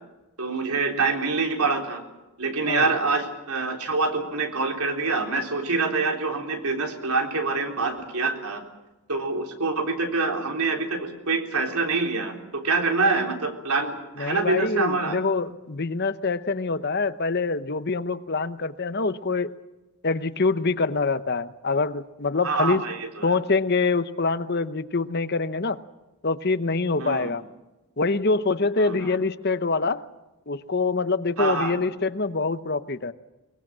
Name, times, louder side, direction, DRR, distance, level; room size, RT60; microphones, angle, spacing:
voice 1, 0.4-2.0 2.4-8.6 9.1-15.2 22.4-23.3 27.0-27.3 28.8-29.2 31.4-31.8, right 3 dB, 85° right, 3 dB, 3.7 m, -26 dB
voice 2, 14.2-19.5 20.0-22.8 23.2-25.8 26.2-27.4 28.0-30.0 30.5-33.1, left 3 dB, 45° left, 12 dB, 0.9 m, -25 dB
23.0 x 21.0 x 7.5 m, 1.0 s
head